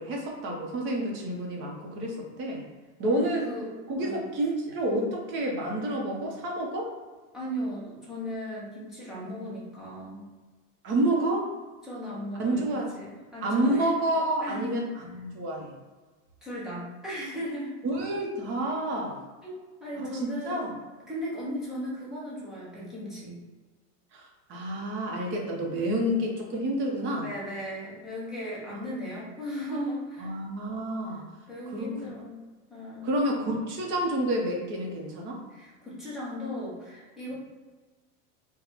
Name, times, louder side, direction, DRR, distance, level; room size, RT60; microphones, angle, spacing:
voice 1, 0.0-2.6 3.0-3.5 3.9-6.9 10.8-11.5 12.4-12.9 13.4-15.7 17.8-19.2 20.0-20.7 24.1-27.3 30.2-31.2 31.7-31.9 33.0-35.4, right 1 dB, 25° right, -1 dB, 0.7 m, -29 dB
voice 2, 3.0-3.7 4.0-4.3 7.3-10.3 11.8-13.9 14.4-14.7 16.4-17.8 19.4-20.6 21.1-23.4 27.2-30.4 31.5-32.4 32.7-33.2 35.5-37.3, equal, ahead, -9 dB, 0.4 m, -37 dB
4.0 x 2.2 x 4.4 m, 1.3 s
supercardioid pair, 160°, 44 cm